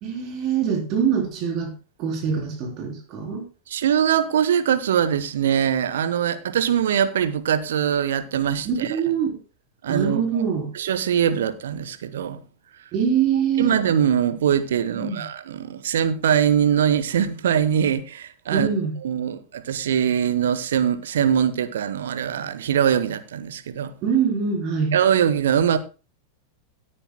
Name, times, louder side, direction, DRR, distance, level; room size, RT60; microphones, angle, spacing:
voice 1, 0.0-1.7 2.0-3.5 8.7-9.4 9.9-10.7 12.9-13.8 14.9-15.3 18.5-18.9 24.0-24.9, right 7 dB, 40° right, 3.5 m, -24 dB
voice 2, 3.7-9.0 9.8-10.2 10.7-12.4 13.6-18.7 19.0-23.9 24.9-25.8, right 9 dB, 60° right, 1.0 m, -22 dB
17.5 x 9.9 x 2.2 m
figure-of-eight pair, 90°, 0 cm